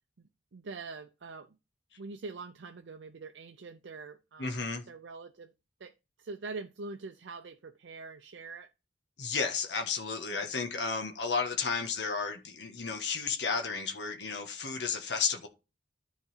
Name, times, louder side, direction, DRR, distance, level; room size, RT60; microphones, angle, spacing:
voice 1, 0.2-1.6 2.0-5.5 5.8-5.9 6.2-8.7 10.4-10.5, right 4 dB, 85° right, 0.6 m, -44 dB
voice 2, 4.4-4.8 9.2-15.5, left 5 dB, 70° left, 1.4 m, -33 dB
10.5 x 4.0 x 5.5 m
head